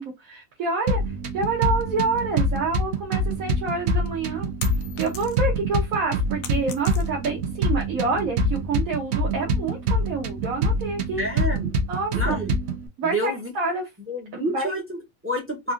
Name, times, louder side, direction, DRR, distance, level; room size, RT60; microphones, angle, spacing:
voice 1, 0.0-4.5 5.0-11.2 11.9-12.4 13.0-13.9 14.3-14.7, right 3 dB, 75° right, 1.2 m, -28 dB
sound 1, 0.9-12.9, right 1 dB, 60° right, 0.8 m, -25 dB
sound 2, 4.2-5.6 6.0-7.4, left 7 dB, 80° left, 1.1 m, -39 dB
voice 2, 11.2-11.7 12.1-12.5 13.0-13.5 14.1-15.7, equal, 15° right, 0.5 m, -29 dB
3.4 x 2.4 x 2.4 m
omnidirectional pair, 1.5 m